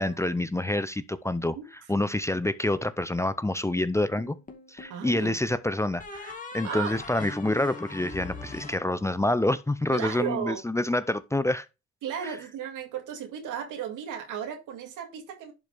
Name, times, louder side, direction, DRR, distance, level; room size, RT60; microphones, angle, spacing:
voice 1, 0.0-1.6 1.9-4.4 4.7-11.7 12.2-12.4, left 1 dB, 10° left, 0.5 m, -27 dB
sound 1, 4.2-5.0 6.0-9.5, left 3 dB, 25° left, 2.1 m, -41 dB
voice 2, 4.9-5.4 6.6-6.9 9.9-10.6 12.0-15.5, right 9 dB, 85° right, 2.2 m, -35 dB
11.0 x 5.1 x 3.4 m
cardioid pair, 90°, 30 cm